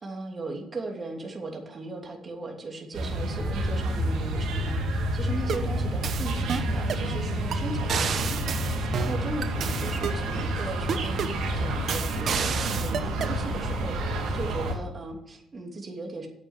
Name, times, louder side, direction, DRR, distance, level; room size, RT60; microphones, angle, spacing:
voice 1, 0.0-4.8 5.1-16.3, right 2 dB, 35° right, 1 dB, 2.9 m, -37 dB
sound 1, 2.9-14.7, right 1 dB, 85° right, 2.6 m, -29 dB
sound 2, 5.3-5.7 6.0-7.1 7.5-7.6 7.9-10.2 10.9-11.4 11.9-13.4, right 7 dB, 60° right, 1.1 m, -30 dB
9.2 x 8.4 x 8.1 m, 0.80 s
cardioid pair, 90°, 0 cm